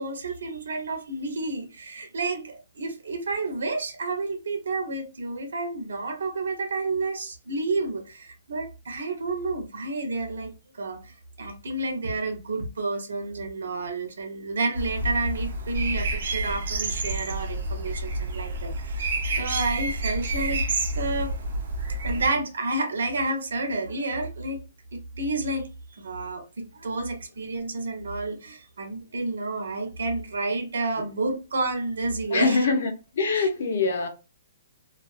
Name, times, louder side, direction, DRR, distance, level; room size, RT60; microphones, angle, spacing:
voice 1, 0.0-11.1 11.4-20.6 20.9-21.3 21.8-24.6 24.9-25.7 26.0-32.7 33.3-33.5, right 2 dB, 80° right, 0.9 m, -30 dB
sound 1, 14.7-22.3, right 2 dB, 50° right, 0.6 m, -29 dB
voice 2, 32.3-34.1, left 4 dB, 45° left, 0.7 m, -24 dB
2.4 x 2.4 x 2.4 m
hypercardioid pair, 180°, 0 cm